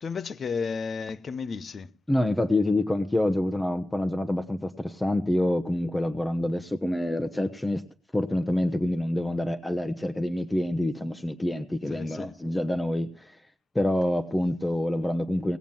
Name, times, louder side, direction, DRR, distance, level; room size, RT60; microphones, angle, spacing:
voice 1, 0.0-1.9 11.9-12.3, left 5 dB, 45° left, 0.8 m, -33 dB
voice 2, 2.1-7.8 8.1-13.4 13.7-15.6, left 1 dB, 10° left, 1.0 m, -27 dB
18.5 x 7.2 x 7.4 m
cardioid pair, 90°, 0 cm